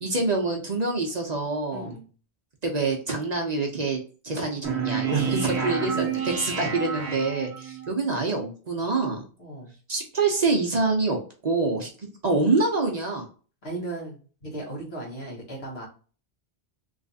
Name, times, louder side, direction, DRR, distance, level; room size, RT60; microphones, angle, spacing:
voice 1, 0.0-1.9 2.6-9.2 9.9-11.2 11.4-13.3, right 3 dB, 45° right, 2 dB, 0.7 m, -26 dB
voice 2, 1.7-2.1 5.1-7.2 9.4-9.7 13.6-15.9, right 1 dB, 70° left, -2 dB, 1.7 m, -37 dB
sound 1, 4.6-7.9, right 7 dB, 85° right, 1.0 m, -30 dB
3.2 x 3.1 x 2.7 m, 0.38 s
omnidirectional pair, 1.1 m